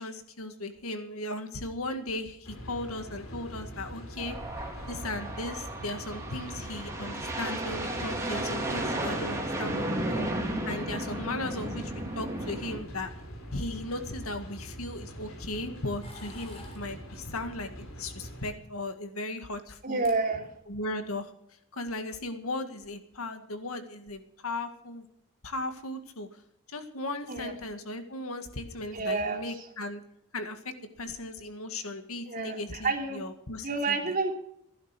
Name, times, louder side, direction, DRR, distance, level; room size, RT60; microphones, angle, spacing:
voice 1, 0.0-4.4 4.9-10.2 10.7-13.1 13.5-20.1 20.7-21.3 21.7-25.0 25.4-26.4 26.7-30.0 30.3-34.1, left 2 dB, 90° left, 7 dB, 2.0 m, -37 dB
sound 1, 2.4-18.5, equal, 70° left, 3.8 m, -44 dB
sound 2, 4.2-12.8, right 1 dB, 15° right, 3.0 m, -34 dB
sound 3, 16.0-16.9 18.2-18.9 19.7-19.8 20.0-20.2 20.6-20.9, left 2 dB, 30° left, 3.5 m, -50 dB
voice 2, 19.8-20.5 27.3-27.5 28.9-29.7 32.3-33.2 33.6-34.3, right 3 dB, 40° right, 2 dB, 3.1 m, -30 dB
16.0 x 11.0 x 6.1 m, 0.73 s
head